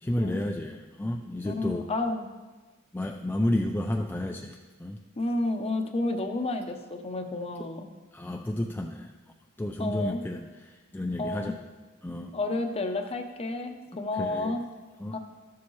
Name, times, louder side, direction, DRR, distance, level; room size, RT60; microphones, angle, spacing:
voice 1, 0.0-1.8 2.9-5.0 8.1-9.1 9.6-11.6 12.0-12.3 14.1-14.6 15.0-15.1, left 1 dB, 10° left, 1 dB, 0.3 m, -31 dB
voice 2, 1.4-2.3 5.2-7.9 9.8-10.2 11.2-11.6 12.3-14.7 15.1-15.2, left 2 dB, 30° left, 5 dB, 0.7 m, -31 dB
12.5 x 7.1 x 3.1 m, 1.3 s
head